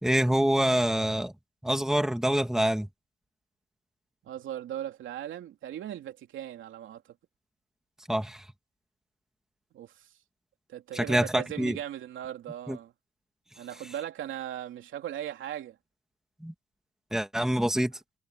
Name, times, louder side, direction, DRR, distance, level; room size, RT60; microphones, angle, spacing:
voice 1, 0.0-1.3 1.6-2.9 8.1-8.4 10.9-11.8 12.7-12.8 16.4-16.5 17.1-17.9, right 1 dB, ahead, 2.2 m, -26 dB
voice 2, 4.2-7.0 9.7-10.1 10.7-12.9 13.6-15.8, right 11 dB, 75° right, 3.2 m, -38 dB
cardioid pair, 90°, 20 cm